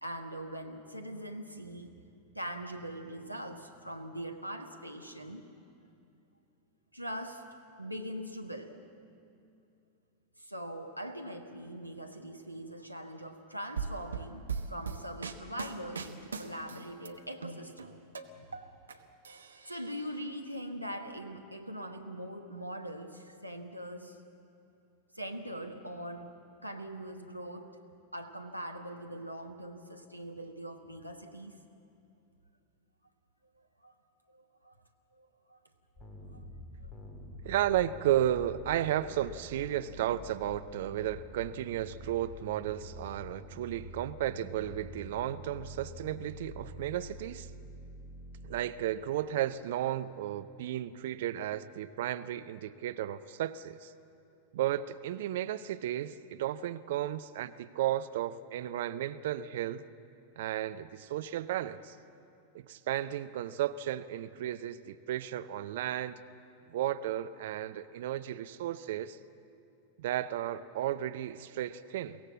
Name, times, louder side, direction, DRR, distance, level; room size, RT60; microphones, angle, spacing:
voice 1, 0.0-1.9 2.3-5.5 6.9-7.4 7.8-8.8 10.4-17.9 18.4-18.5 19.7-24.2 25.1-27.8 28.1-31.6 33.8-33.9 34.3-34.7 35.1-35.6 36.3-36.4 36.8-36.9, equal, 90° right, 4 dB, 1.3 m, -42 dB
sound 1, 13.8-17.1 17.4-18.9 19.2-20.1, right 5 dB, 75° right, 1.0 m, -39 dB
sound 2, 36.0-48.6, left 1 dB, 15° left, 2.3 m, -47 dB
voice 2, 37.4-47.5 48.5-53.9 54.5-59.8 60.4-62.0 62.5-66.2 66.7-69.2 70.0-72.2, right 12 dB, 55° right, 12 dB, 0.5 m, -33 dB
23.0 x 17.0 x 7.4 m, 2.6 s
figure-of-eight pair, 90°, 0 cm